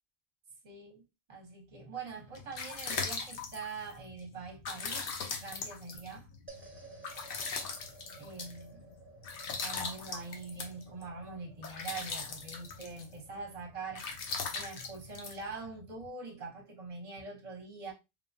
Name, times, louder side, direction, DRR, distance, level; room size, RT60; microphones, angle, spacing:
voice 1, 0.6-1.0 1.3-5.1 5.4-6.3 8.2-8.8 9.4-14.1 14.5-17.9, right 4 dB, 40° right, 0.8 m, -44 dB
sound 1, 2.1-16.1, left 4 dB, 65° left, 0.8 m, -40 dB
sound 2, 6.5-16.9, right 3 dB, 20° right, 0.4 m, -58 dB
3.1 x 2.1 x 2.5 m
omnidirectional pair, 1.0 m